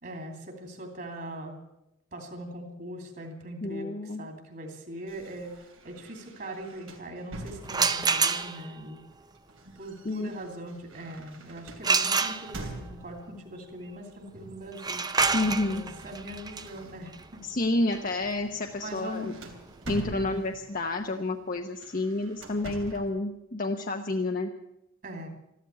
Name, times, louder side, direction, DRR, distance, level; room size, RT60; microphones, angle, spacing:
voice 1, 0.0-1.6 2.1-5.6 5.8-9.0 9.7-15.0 15.7-17.4 18.8-19.6 20.1-20.5 25.0-25.3, right 1 dB, 50° right, 4 dB, 2.8 m, -41 dB
voice 2, 3.6-4.2 10.0-10.3 15.3-15.8 17.4-19.3 19.9-24.5, left 2 dB, 45° left, 4 dB, 0.8 m, -29 dB
sound 1, 5.1-8.2 9.1-13.3 14.3-14.7 15.0-17.3 17.8-18.0 18.4-20.7 21.7-23.2, right 2 dB, 85° right, 3.1 m, -45 dB
sound 2, 7.6-8.8 11.8-12.9 14.7-20.4, right 5 dB, 20° right, 0.6 m, -29 dB
14.0 x 12.5 x 8.2 m, 0.88 s
head